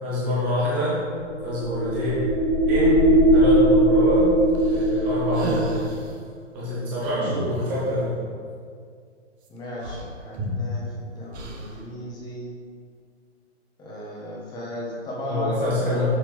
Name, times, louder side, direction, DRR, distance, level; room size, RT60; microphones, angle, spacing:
voice 1, 0.0-1.0 1.4-2.2 2.7-3.0 3.3-4.3 4.7-5.8 6.5-8.2 15.2-16.1, equal, 5° right, -8 dB, 0.3 m, -25 dB
sound 1, 1.0-6.0, right 1 dB, 45° right, 1.6 m, -20 dB
sound 2, 4.6-6.2 7.0-8.0 9.5-9.6 9.8-10.8 11.3-11.9, right 2 dB, 60° right, 1.2 m, -34 dB
voice 2, 9.5-12.5 13.8-16.1, left 1 dB, 10° left, -4 dB, 1.1 m, -35 dB
6.7 x 5.6 x 3.1 m, 2.2 s
hypercardioid pair, 135°, 37 cm